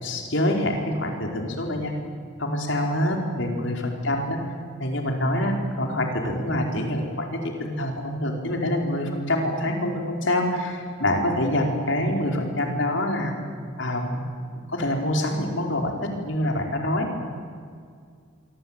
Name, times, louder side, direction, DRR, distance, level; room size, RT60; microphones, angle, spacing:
voice 1, 0.0-1.9 2.4-4.4 4.8-13.3 13.8-14.2 14.7-15.9 16.2-17.1, left 1 dB, 65° left, 2 dB, 4.9 m, -26 dB
26.0 x 24.5 x 9.1 m, 2.1 s
head